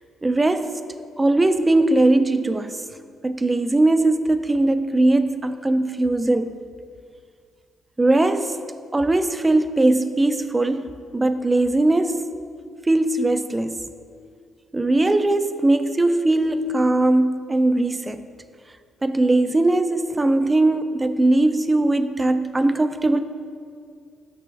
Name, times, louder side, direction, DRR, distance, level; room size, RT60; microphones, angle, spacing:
voice 1, 0.2-0.8 1.2-2.8 3.2-6.5 8.0-8.6 8.9-12.3 12.9-13.8 14.7-18.2 19.0-23.2, right 2 dB, 20° right, 11 dB, 0.3 m, -20 dB
6.0 x 5.9 x 3.4 m, 2.2 s
cardioid pair, 90°, 0 cm